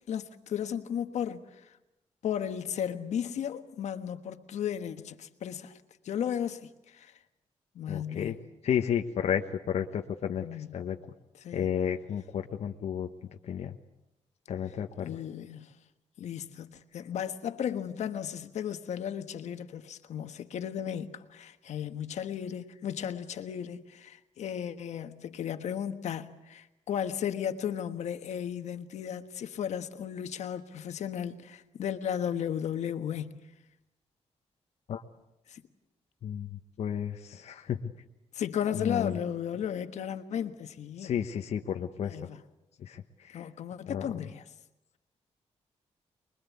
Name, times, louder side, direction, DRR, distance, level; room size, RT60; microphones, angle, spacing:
voice 1, 0.1-1.4 2.2-5.7 6.0-7.1 7.7-8.5 10.4-10.7 11.4-11.7 15.0-15.7 16.2-33.4 35.5-35.6 38.3-41.1 42.1-42.3 43.3-44.4, left 9 dB, 90° left, 1.4 m, -35 dB
voice 2, 7.9-8.4 8.6-11.0 11.5-13.1 13.4-13.8 14.5-15.2 34.9-35.0 36.2-37.9 38.7-39.2 41.0-42.2 42.8-43.5 43.9-44.1, left 8 dB, 70° left, 1.2 m, -32 dB
25.0 x 22.0 x 8.5 m
wide cardioid pair, 160°, 11 cm